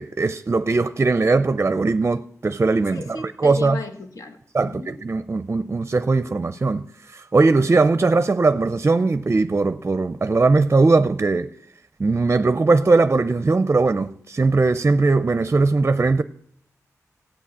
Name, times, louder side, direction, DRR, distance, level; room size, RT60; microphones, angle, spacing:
voice 1, 0.0-3.0 3.4-3.8 4.5-6.8 7.1-11.5 12.0-16.2, right 3 dB, 40° right, 0.5 m, -19 dB
voice 2, 2.9-5.0, left 3 dB, 75° left, 1.8 m, -35 dB
16.5 x 8.6 x 8.4 m
wide cardioid pair, 105°, 6 cm